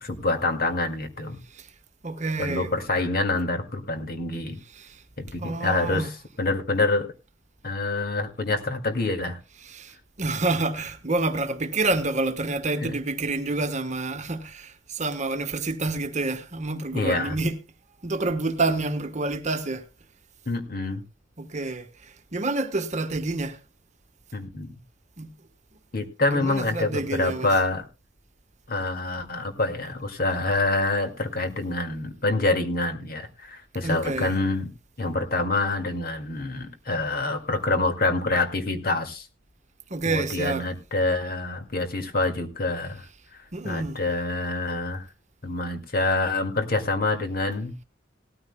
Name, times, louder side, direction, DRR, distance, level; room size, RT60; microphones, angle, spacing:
voice 1, 0.0-1.4 2.4-4.6 5.2-6.1 6.4-7.1 7.6-9.4 12.8-12.9 16.9-17.4 20.5-21.0 24.3-24.8 25.9-27.9 28.7-34.7 35.0-39.3 40.0-43.0 43.6-45.1 45.4-47.8, left 2 dB, 55° left, 2.0 m, -26 dB
voice 2, 2.0-2.7 4.7-5.0 5.4-6.1 9.6-17.6 18.0-19.9 21.4-23.6 25.2-25.3 26.2-27.5 33.8-34.4 39.9-40.7 43.5-44.0, right 2 dB, 40° right, 1.2 m, -28 dB
18.5 x 13.5 x 2.2 m
head